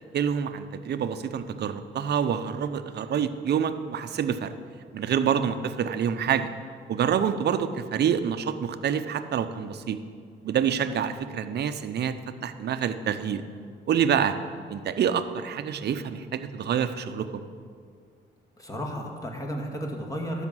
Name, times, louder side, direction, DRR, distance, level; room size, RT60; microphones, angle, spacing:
voice 1, 0.1-4.5 4.9-6.5 6.9-10.0 10.4-12.1 12.4-13.4 13.9-14.4 14.7-17.5, right 8 dB, 55° right, 10 dB, 0.7 m, -27 dB
voice 2, 18.6-20.4, equal, 15° left, 0 dB, 2.0 m, -33 dB
12.5 x 5.8 x 7.4 m, 2.1 s
cardioid pair, 90°, 20 cm